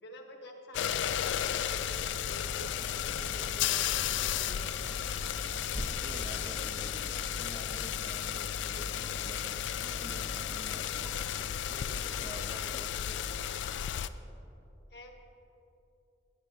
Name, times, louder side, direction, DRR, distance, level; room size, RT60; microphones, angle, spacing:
voice 1, 0.0-4.7 14.9-15.1, equal, 65° left, 2 dB, 1.2 m, -49 dB
sound 1, 0.7-14.1, left 10 dB, 85° left, 0.3 m, -34 dB
sound 2, 1.3-12.3, equal, 25° left, 0.7 m, -45 dB
Bowed string instrument, 1.9-7.8, right 1 dB, ahead, 1.1 m, -58 dB
voice 2, 6.0-11.6 12.1-13.5, right 1 dB, 30° right, 3 dB, 0.9 m, -49 dB
19.0 x 8.9 x 2.7 m, 2.8 s
head